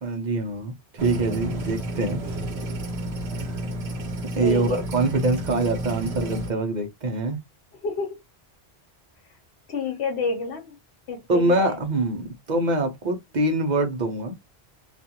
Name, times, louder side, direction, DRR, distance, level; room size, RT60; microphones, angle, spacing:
voice 1, 0.0-2.2 3.4-3.6 4.4-7.4 11.3-14.4, right 2 dB, 50° right, 0.7 m, -24 dB
sound 1, 1.0-6.5, right 1 dB, 85° right, 1.1 m, -31 dB
voice 2, 4.4-4.9 7.8-8.2 9.7-10.8 11.1-11.8, left 4 dB, 85° left, 1.0 m, -29 dB
2.5 x 2.3 x 2.7 m
omnidirectional pair, 1.1 m